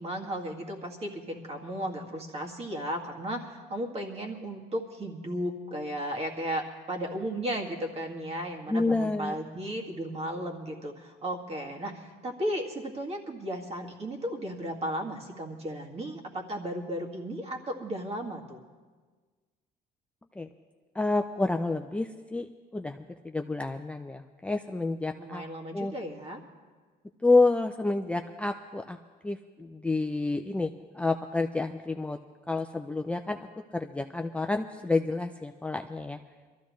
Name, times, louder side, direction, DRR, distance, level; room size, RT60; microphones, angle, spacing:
voice 1, 0.0-18.6 25.2-26.4, equal, 40° right, 1 dB, 2.0 m, -35 dB
voice 2, 8.7-9.3 20.4-20.5 21.0-22.5 22.7-23.0 23.2-25.4 25.7-25.9 27.2-29.0 29.2-32.2 32.5-36.2, left 3 dB, 5° left, 5 dB, 0.4 m, -29 dB
23.0 x 14.0 x 3.2 m, 1.4 s
cardioid pair, 110°, 17 cm